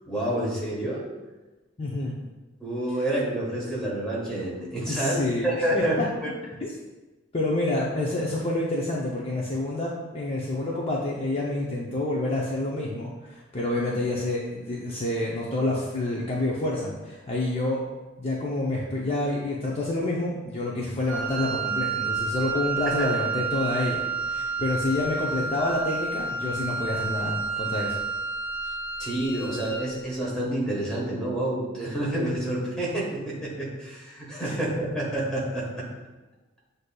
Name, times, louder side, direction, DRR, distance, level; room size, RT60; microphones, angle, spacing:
voice 1, 0.1-1.0 2.6-6.0 23.0-23.1 29.0-35.9, right 1 dB, 5° left, -5 dB, 1.2 m, -28 dB
voice 2, 1.8-2.1 4.9-6.1 7.3-17.8 18.2-28.0 34.4-34.6, left 2 dB, 30° left, -4 dB, 0.5 m, -28 dB
Wind instrument woodwind instrument, 21.0-29.9, right 4 dB, 80° right, 0.7 m, -30 dB
7.7 x 2.6 x 2.2 m, 1.2 s
head